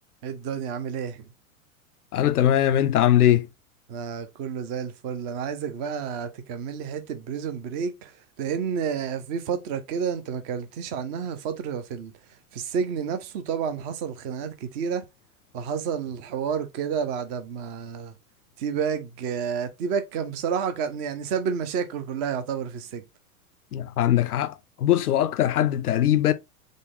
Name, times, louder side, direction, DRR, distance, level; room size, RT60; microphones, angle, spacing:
voice 1, 0.2-1.2 3.9-12.1 12.5-15.0 15.5-18.1 18.6-23.0, right 7 dB, 20° right, 0.3 m, -30 dB
voice 2, 2.1-3.5 23.7-26.3, left 11 dB, 90° left, 0.5 m, -21 dB
3.7 x 2.0 x 3.6 m
hypercardioid pair, 105°, 44 cm